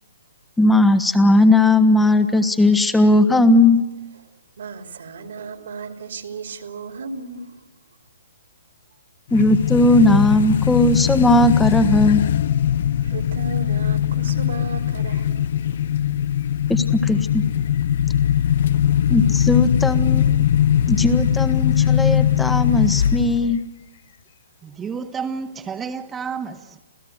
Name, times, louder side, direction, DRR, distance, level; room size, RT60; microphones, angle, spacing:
voice 1, 0.6-3.8 9.3-12.2 16.7-17.4 19.1-20.3 20.9-23.6, left 2 dB, 5° left, 1.6 m, -17 dB
voice 2, 4.6-7.6 13.0-15.5, right 4 dB, 65° right, 3.0 m, -34 dB
sound 1, 9.3-23.6, left 10 dB, 55° left, 0.7 m, -20 dB
voice 3, 24.6-26.8, right 6 dB, 15° right, 1.6 m, -30 dB
27.5 x 16.5 x 8.1 m
hypercardioid pair, 130°, 0 cm